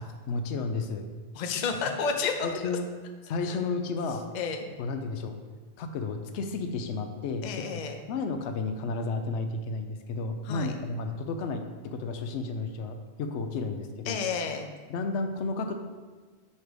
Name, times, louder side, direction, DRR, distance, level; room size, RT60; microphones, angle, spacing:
voice 1, 0.3-1.1 1.9-2.0 2.4-2.9 3.3-4.3 4.8-5.3 5.8-7.4 7.7-7.8 8.1-14.2 14.9-15.7, left 3 dB, 90° left, 6 dB, 0.9 m, -32 dB
voice 2, 1.3-2.6 3.4-3.6 4.3-4.6 7.4-8.0 10.4-10.7 14.1-14.7, left 5 dB, 50° left, 5 dB, 0.6 m, -31 dB
4.6 x 4.3 x 5.0 m, 1.4 s
omnidirectional pair, 1.1 m